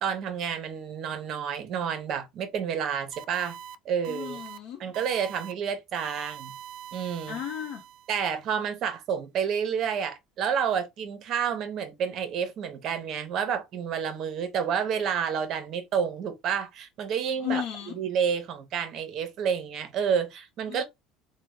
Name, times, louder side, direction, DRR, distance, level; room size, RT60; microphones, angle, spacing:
voice 1, 0.0-3.6 3.8-4.4 4.8-6.5 6.9-7.4 8.1-17.6 17.9-20.8, right 7 dB, 50° right, 0.8 m, -29 dB
sound 1, 3.1-3.8 4.0-4.6 4.9-5.5 5.9-8.3, right 9 dB, 70° right, 0.4 m, -43 dB
voice 2, 4.1-4.8 7.3-7.8 17.4-18.0 20.7-20.8, left 9 dB, 70° left, 0.7 m, -34 dB
3.3 x 2.1 x 3.1 m
cardioid pair, 135°, 0 cm